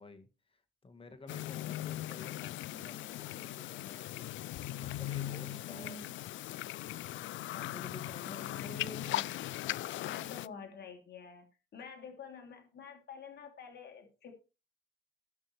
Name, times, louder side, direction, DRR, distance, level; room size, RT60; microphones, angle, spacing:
voice 1, 0.0-4.4 4.8-6.1 7.5-8.5, left 3 dB, 25° left, 8 dB, 2.1 m, -52 dB
sound 1, 1.3-10.5, left 14 dB, 75° left, 0.4 m, -39 dB
voice 2, 5.3-6.1 8.2-9.3 10.0-11.5 11.7-14.3, left 4 dB, 55° left, 4 dB, 3.0 m, -48 dB
18.0 x 6.3 x 3.2 m, 0.30 s
cardioid pair, 90°, 20 cm